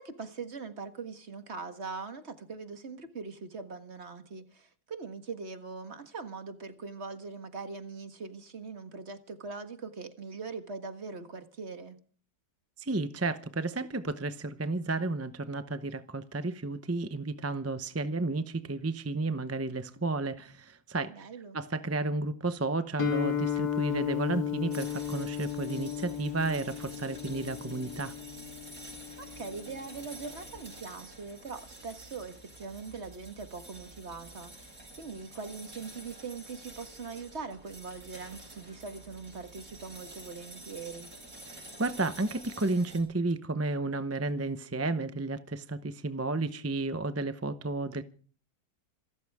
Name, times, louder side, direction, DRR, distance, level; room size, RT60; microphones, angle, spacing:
voice 1, 0.0-12.0 21.1-21.6 29.2-34.7 35.0-41.1, right 4 dB, 45° right, 1.8 m, -42 dB
voice 2, 12.8-21.3 21.5-28.1 41.5-48.0, right 2 dB, 15° right, 0.5 m, -32 dB
Guitar, 23.0-30.7, left 9 dB, 90° left, 2.3 m, -35 dB
sound 1, 24.7-43.0, right 2 dB, 60° right, 5.7 m, -49 dB
27.0 x 14.0 x 3.6 m
omnidirectional pair, 1.7 m